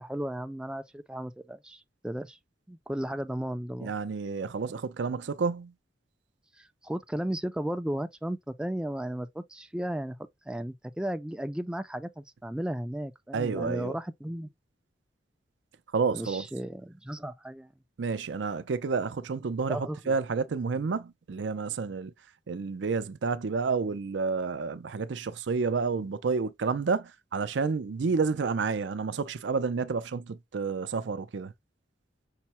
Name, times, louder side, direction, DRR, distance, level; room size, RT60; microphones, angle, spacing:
voice 1, 0.0-2.4 2.7-3.9 6.6-10.2 10.5-14.5 16.1-17.7 19.7-20.1, right 1 dB, 5° right, 0.3 m, -35 dB
voice 2, 3.8-5.7 13.3-13.9 15.9-16.5 18.0-22.1 22.5-31.5, right 4 dB, 75° right, 0.5 m, -30 dB
5.5 x 2.1 x 4.2 m
head